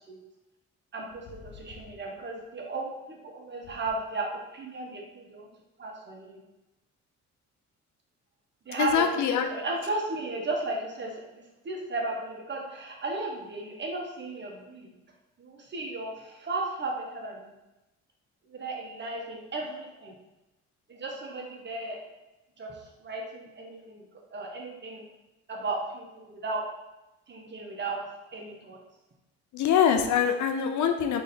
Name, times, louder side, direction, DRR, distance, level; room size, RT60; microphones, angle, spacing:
voice 1, 0.9-5.5 5.8-6.4 8.6-15.0 15.4-17.5 18.5-20.1 20.9-22.0 22.6-24.0 24.3-25.0 25.5-26.6 27.3-28.0 28.3-28.8, right 2 dB, 35° right, -1 dB, 1.2 m, -35 dB
voice 2, 8.8-9.5 29.5-31.2, left 8 dB, 75° left, 6 dB, 0.6 m, -24 dB
3.5 x 3.3 x 4.2 m, 1.0 s
cardioid pair, 90°, 30 cm